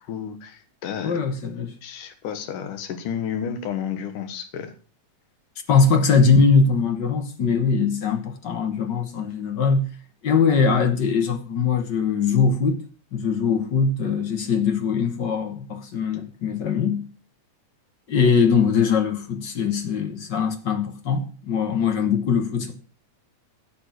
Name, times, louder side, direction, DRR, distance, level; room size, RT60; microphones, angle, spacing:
voice 1, 0.1-1.2 1.8-4.7, left 8 dB, 80° left, 3.0 m, -31 dB
voice 2, 1.0-1.7 5.7-10.0 10.2-12.8 13.1-17.1 18.1-22.7, left 5 dB, 60° left, 1.2 m, -21 dB
11.5 x 7.2 x 6.9 m
omnidirectional pair, 3.6 m